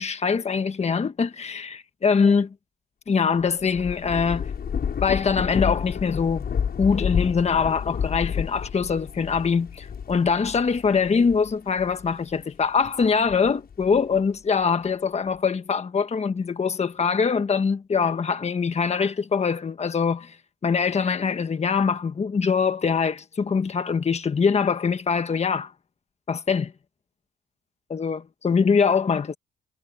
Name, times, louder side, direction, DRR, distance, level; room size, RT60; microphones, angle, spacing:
voice 1, 0.0-2.5 3.1-4.5 5.0-6.4 6.8-20.4 20.6-25.7 26.3-26.7 27.9-29.4, left 5 dB, 35° left, 1.4 m, -23 dB
Thunder / Rain, 3.4-12.3 12.9-14.2, left 7 dB, 50° left, 7.2 m, -30 dB
cardioid pair, 90°, 20 cm